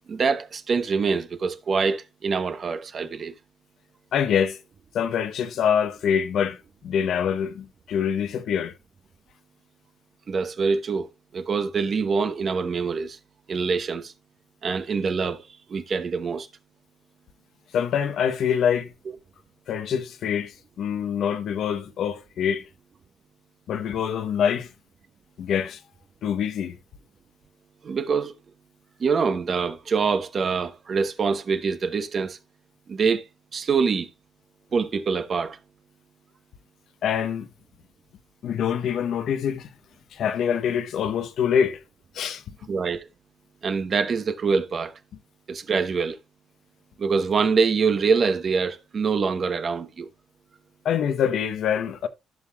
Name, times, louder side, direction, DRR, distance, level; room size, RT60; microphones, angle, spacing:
voice 1, 0.1-3.3 10.3-13.2 13.5-14.1 14.6-15.4 15.7-16.5 27.8-28.4 29.0-32.4 32.9-33.2 33.5-34.1 34.7-35.6 42.7-43.1 43.6-44.9 45.5-46.2 47.0-50.1, right 5 dB, 45° right, 1.0 m, -25 dB
voice 2, 4.1-4.6 4.9-8.7 17.7-18.9 19.7-22.7 23.7-24.7 25.4-25.8 26.2-26.8 37.0-37.5 38.4-39.7 40.1-41.8 42.1-42.4 50.8-52.1, left 8 dB, 70° left, 0.8 m, -25 dB
15.5 x 5.6 x 2.3 m
cardioid pair, 90°, 0 cm